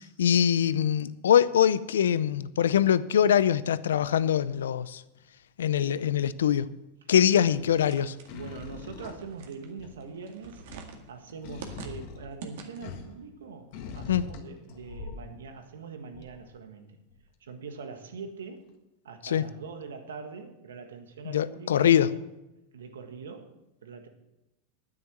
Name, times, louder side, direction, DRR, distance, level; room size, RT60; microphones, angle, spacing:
voice 1, 0.2-5.0 5.6-6.7 7.1-8.1 14.1-14.2 19.2-19.4 21.2-22.1, left 9 dB, 85° left, 17 dB, 0.6 m, -23 dB
sound 1, 4.8-5.2 7.5-7.9 8.3-10.1 10.4-13.2 13.7-15.4 16.1-16.4 17.1-17.2, left 5 dB, 60° left, 1.6 m, -43 dB
voice 2, 7.0-7.5 8.3-10.6 11.1-17.0 17.4-18.6 19.0-22.2 22.7-24.1, right 5 dB, 90° right, 7 dB, 1.6 m, -43 dB
sound 2, 7.2-13.0, right 5 dB, 70° right, 1.9 m, -47 dB
9.6 x 9.4 x 7.4 m, 0.97 s
hypercardioid pair, 115°, 0 cm